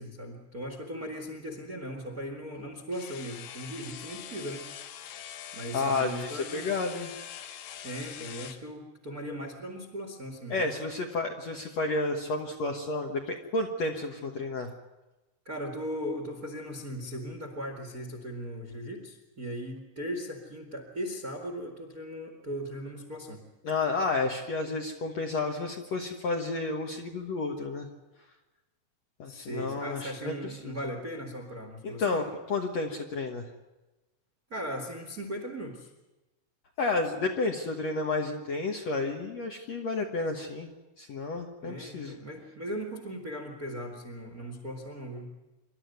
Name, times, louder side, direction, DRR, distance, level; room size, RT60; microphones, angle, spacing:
voice 1, 0.0-4.6 5.1-5.2 5.5-6.7 7.8-10.7 15.4-23.4 29.2-32.2 34.5-35.9 41.6-45.4, equal, 35° right, 4 dB, 1.5 m, -38 dB
sound 1, 2.9-8.6, left 10 dB, 90° left, 1.5 m, -43 dB
voice 2, 5.7-7.1 10.5-14.7 23.6-27.9 29.2-30.8 31.8-33.5 36.8-40.7 41.0-42.1, left 3 dB, 60° left, 2 dB, 1.9 m, -31 dB
26.5 x 12.5 x 9.5 m, 1.1 s
omnidirectional pair, 4.6 m